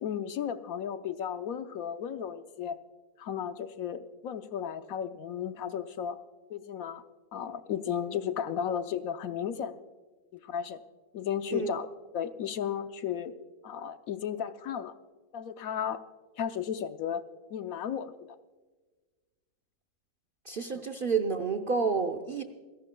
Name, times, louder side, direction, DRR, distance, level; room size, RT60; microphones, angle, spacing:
voice 1, 0.0-2.8 3.2-6.2 6.5-7.0 7.3-9.7 10.3-10.8 11.1-11.9 12.1-13.3 13.6-14.9 15.3-16.0 16.4-17.2 17.5-18.4 20.7-20.8, left 8 dB, 70° left, 10 dB, 1.1 m, -34 dB
voice 2, 20.5-22.4, right 5 dB, 50° right, 5 dB, 0.7 m, -29 dB
29.0 x 11.5 x 2.2 m, 1.3 s
omnidirectional pair, 1.6 m